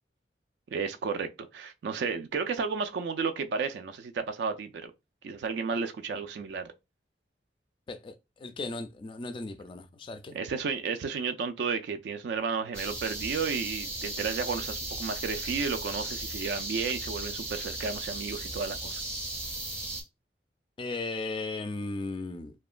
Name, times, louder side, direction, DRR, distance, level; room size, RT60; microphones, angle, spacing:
voice 1, 0.7-4.9 5.2-6.7 10.3-19.0, right 5 dB, 70° right, 0.3 m, -32 dB
voice 2, 7.9-10.3 20.8-22.5, left 3 dB, 30° left, 0.3 m, -36 dB
sound 1, 12.7-20.0, right 2 dB, 15° right, 0.6 m, -36 dB
2.8 x 2.2 x 2.4 m
head